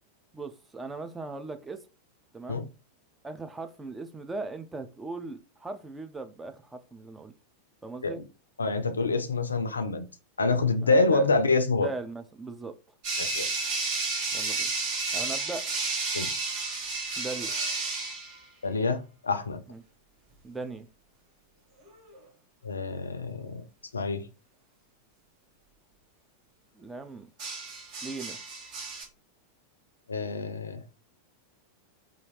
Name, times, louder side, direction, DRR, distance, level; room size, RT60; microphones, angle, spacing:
voice 1, 0.3-1.8 2.3-2.7 3.2-7.3 7.8-8.2 10.8-11.3 11.8-12.7 14.3-14.7 15.1-15.7 17.2-17.5 19.7-19.8 20.4-20.9 26.8-27.3 28.0-28.4, right 3 dB, 10° right, 0.3 m, -38 dB
voice 2, 8.6-10.1 10.4-11.9 13.2-13.5 14.4-14.5 16.1-16.3 18.6-19.6 22.6-23.6 23.9-24.2 30.1-30.8, left 3 dB, 75° left, 0.3 m, -26 dB
sound 1, 13.0-18.4 21.9-22.2 27.4-29.0, right 3 dB, 45° right, 0.9 m, -31 dB
2.7 x 2.4 x 3.0 m
figure-of-eight pair, 90°, 0 cm